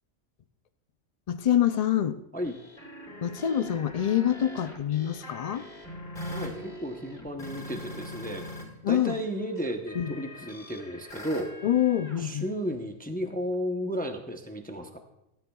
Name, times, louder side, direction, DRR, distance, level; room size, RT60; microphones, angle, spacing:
voice 1, 1.3-2.2 3.2-5.7 8.8-9.2 9.9-10.1 11.6-12.5, left 10 dB, 80° left, 10 dB, 0.3 m, -26 dB
sound 1, 2.4-8.6 8.9-12.2, left 1 dB, 45° left, 4.4 m, -42 dB
voice 2, 6.3-8.4 8.9-11.7 12.2-15.0, equal, 10° left, 4 dB, 0.6 m, -33 dB
17.5 x 11.5 x 2.3 m, 0.87 s
omnidirectional pair, 1.3 m